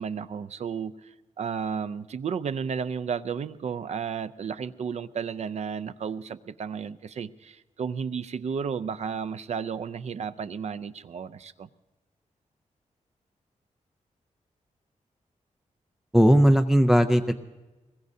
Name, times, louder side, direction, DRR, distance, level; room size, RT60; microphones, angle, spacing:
voice 1, 0.0-11.7, right 6 dB, 60° right, 13 dB, 0.5 m, -33 dB
voice 2, 16.1-17.3, equal, 5° right, 6 dB, 0.4 m, -18 dB
23.0 x 21.0 x 2.7 m, 1.1 s
wide cardioid pair, 145°, 13 cm